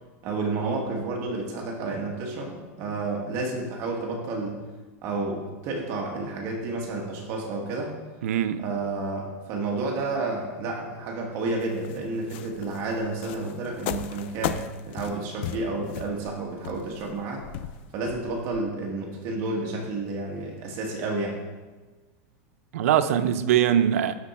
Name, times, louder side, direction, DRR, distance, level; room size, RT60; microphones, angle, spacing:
voice 1, 0.2-4.6 5.0-7.9 8.6-17.4 17.9-21.4, right 3 dB, 40° right, 1.6 m, -30 dB
voice 2, 8.2-8.6 22.7-24.1, right 10 dB, 80° right, 0.5 m, -22 dB
sound 1, 11.6-18.6, left 10 dB, 55° left, 0.4 m, -36 dB
12.0 x 4.5 x 4.2 m
supercardioid pair, 165°, 8 cm